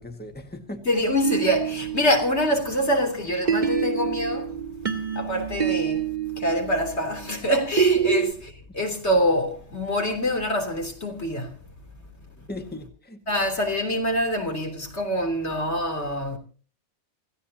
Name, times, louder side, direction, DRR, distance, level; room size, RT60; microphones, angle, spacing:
voice 1, 0.0-0.9 12.5-13.2, left 1 dB, 10° left, 1.7 m, -38 dB
voice 2, 0.9-4.5 5.2-6.0 6.4-11.5 13.3-16.4, equal, 70° left, 3.5 m, -25 dB
sound 1, 1.2-3.0 3.5-8.3, right 8 dB, 40° right, 2.1 m, -27 dB
27.5 x 15.5 x 2.9 m
omnidirectional pair, 1.2 m